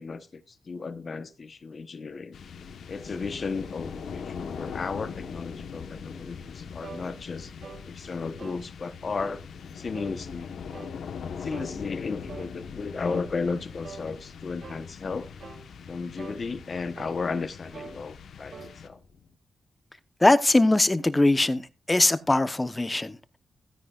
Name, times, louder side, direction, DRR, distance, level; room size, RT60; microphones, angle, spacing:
voice 1, 0.0-2.4 2.9-7.5 7.9-9.4 9.7-10.5 11.4-15.3 15.9-19.0, left 4 dB, 50° left, 1.0 m, -34 dB
sound 1, 2.3-19.3, left 6 dB, 80° left, 1.2 m, -41 dB
sound 2, 6.8-7.1 7.6-7.8 8.4-8.6 9.2-9.4 9.9-10.2 10.7-11.0 11.5-11.8 12.3-12.5 13.1-13.3 13.8-14.1 14.6-14.8 15.4-15.7 16.2-16.4 17.0-17.2 17.7-18.0 18.5-18.7, right 5 dB, 65° right, 2.7 m, -43 dB
voice 2, 20.2-21.6 21.9-23.4, left 2 dB, 20° left, 0.9 m, -21 dB
15.5 x 9.9 x 2.4 m
cardioid pair, 80°, 0 cm